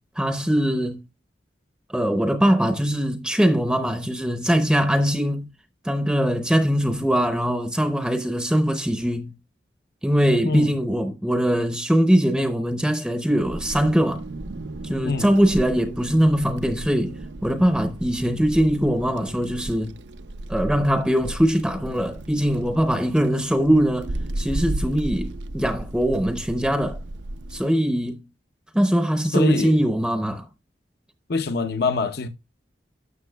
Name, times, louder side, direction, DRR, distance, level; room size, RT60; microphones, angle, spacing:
voice 1, 0.2-1.0 1.9-5.5 5.8-9.3 10.0-14.2 14.8-20.0 20.5-27.0 27.5-28.2 28.7-30.5, equal, 5° right, 0.6 m, -22 dB
Wind, 13.4-27.6, right 1 dB, 80° right, 0.6 m, -34 dB
voice 2, 29.3-29.8 31.3-32.3, left 3 dB, 60° left, 0.7 m, -24 dB
12.5 x 6.9 x 2.2 m
head